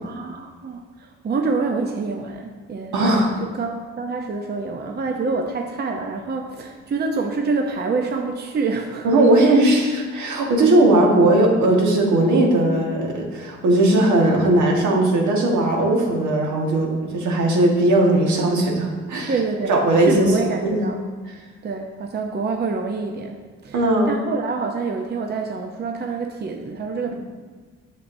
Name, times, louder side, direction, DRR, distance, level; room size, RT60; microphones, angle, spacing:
voice 1, 0.0-2.9 3.4-9.6 19.3-19.8 20.0-21.0 21.6-27.1, right 4 dB, 35° right, 2 dB, 0.6 m, -27 dB
voice 2, 2.9-3.3 9.0-19.3 19.7-20.3 20.6-20.9 23.7-24.1, right 1 dB, 70° right, -1 dB, 1.6 m, -18 dB
8.3 x 6.8 x 2.7 m, 1.5 s
cardioid pair, 90°, 30 cm